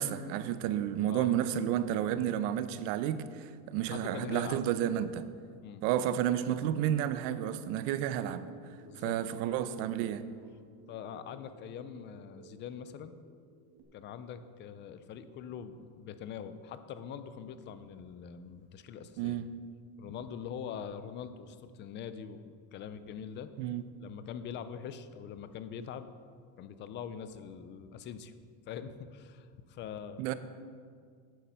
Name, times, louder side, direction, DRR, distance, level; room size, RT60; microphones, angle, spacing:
voice 1, 0.0-5.3 5.8-8.5 9.0-10.2 19.2-19.5 23.6-23.8 30.2-30.3, right 10 dB, 65° right, 0.8 m, -31 dB
voice 2, 3.8-4.6 5.6-5.8 8.8-9.2 10.9-13.2 13.9-19.4 20.0-23.6 24.0-26.1 26.6-28.3 28.7-30.2, left 8 dB, 25° left, 0.3 m, -43 dB
sound 1, 6.8-13.8, right 3 dB, 90° right, 1.7 m, -56 dB
9.2 x 9.1 x 5.7 m
cardioid pair, 145°, 46 cm